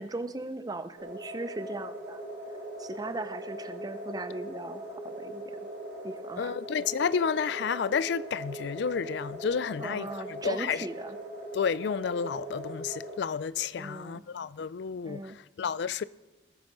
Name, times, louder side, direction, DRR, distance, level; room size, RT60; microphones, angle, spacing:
voice 1, 0.0-2.2 2.8-5.4 6.0-6.5 9.8-11.2 13.8-14.2 15.0-15.4, right 2 dB, 20° right, 0.5 m, -38 dB
sound 1, 1.0-13.2, right 1 dB, 60° right, 1.8 m, -40 dB
voice 2, 6.4-10.9 11.5-16.0, left 6 dB, 55° left, 0.3 m, -31 dB
19.5 x 8.1 x 3.9 m
head